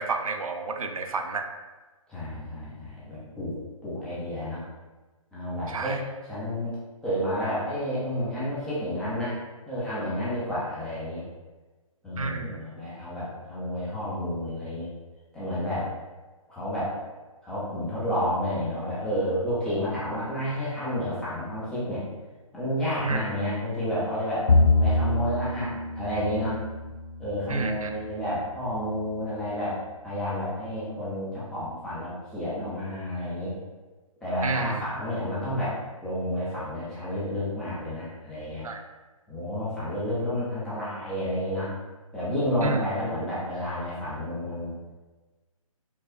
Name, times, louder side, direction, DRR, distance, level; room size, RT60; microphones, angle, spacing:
voice 1, 0.0-1.5 5.7-6.0 12.2-12.7 23.0-23.2 27.5-27.9 34.4-34.8 38.6-38.8 42.6-42.8, right 4 dB, 70° right, 5 dB, 0.4 m, -30 dB
voice 2, 2.1-3.6 3.8-4.6 5.3-6.8 7.0-9.4 9.7-11.2 12.0-14.9 15.3-15.9 16.5-16.9 17.4-22.1 22.5-24.5 24.8-26.6 27.2-33.5 34.2-35.8 36.0-38.7 39.3-41.7 42.1-44.7, left 1 dB, 5° left, -10 dB, 0.4 m, -30 dB
Bowed string instrument, 24.5-28.0, left 2 dB, 75° left, 0.5 m, -25 dB
4.6 x 2.0 x 2.4 m, 1.2 s
figure-of-eight pair, 140°, 18 cm